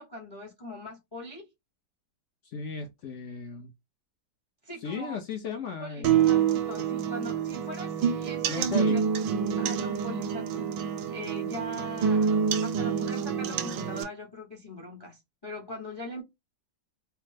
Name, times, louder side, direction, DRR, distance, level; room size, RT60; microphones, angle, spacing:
voice 1, 0.0-1.5 4.6-5.2 5.8-9.0 9.6-16.2, equal, 40° left, 0.3 m, -41 dB
voice 2, 2.4-3.7 4.8-6.2 8.5-9.0, left 5 dB, 75° left, 0.6 m, -36 dB
sound 1, 6.0-14.0, right 7 dB, 85° right, 1.2 m, -27 dB
3.2 x 2.0 x 3.2 m
omnidirectional pair, 1.9 m